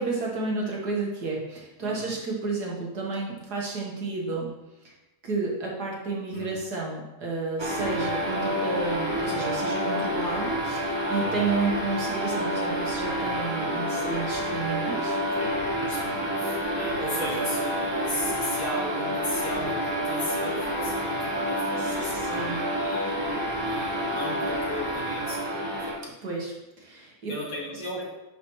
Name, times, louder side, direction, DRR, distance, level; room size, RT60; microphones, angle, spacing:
voice 1, 0.0-4.6 4.8-5.0 5.2-15.2 21.8-22.6 26.0-27.3, right 3 dB, 55° right, -2 dB, 1.5 m, -31 dB
voice 2, 1.8-2.2 6.3-6.5 7.8-8.1 11.2-11.5 15.3-25.9 27.3-28.0, left 1 dB, 65° left, -6 dB, 3.0 m, -36 dB
sound 1, 7.6-26.0, equal, 20° right, 0.7 m, -28 dB
10.5 x 5.0 x 3.0 m, 1.0 s
omnidirectional pair, 2.3 m